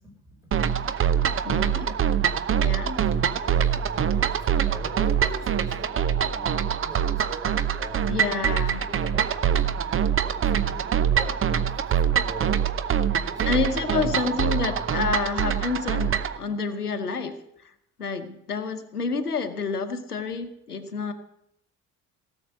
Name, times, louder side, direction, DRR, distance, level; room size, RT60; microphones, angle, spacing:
voice 1, 0.2-0.6 3.3-9.6 10.2-12.7 13.2-15.0, right 2 dB, 5° right, 1 dB, 5.0 m, -42 dB
sound 1, 0.5-16.4, right 8 dB, 30° right, 0.8 m, -24 dB
voice 2, 1.4-2.0 2.5-3.0 8.1-8.8 13.5-17.3 17.6-17.7 18.0-21.1, left 5 dB, 85° left, 9 dB, 0.9 m, -29 dB
17.5 x 7.1 x 7.9 m, 0.74 s
figure-of-eight pair, 50°, 45 cm